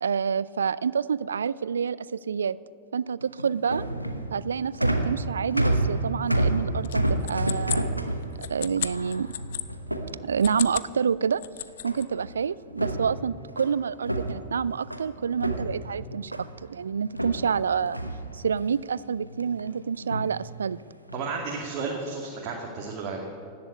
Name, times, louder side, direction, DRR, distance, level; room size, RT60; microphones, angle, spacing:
voice 1, 0.0-2.6 2.9-3.8 4.3-7.9 8.4-9.3 10.2-11.4 11.8-18.0 18.3-20.8, right 6 dB, 70° right, 20 dB, 0.4 m, -28 dB
sound 1, 3.2-10.7 11.8-12.3 12.6-15.1 15.4-16.6 17.1-18.8 19.2-19.7 20.0-20.4 21.1-21.4 22.0-22.3, right 1 dB, 90° right, 1.0 m, -30 dB
sound 2, 6.8-9.7 10.3-10.9 11.2-12.1, left 13 dB, 55° left, 0.6 m, -34 dB
voice 2, 21.1-23.3, right 4 dB, 40° right, -2 dB, 2.3 m, -33 dB
17.0 x 7.8 x 9.7 m, 2.3 s
figure-of-eight pair, 90°, 0 cm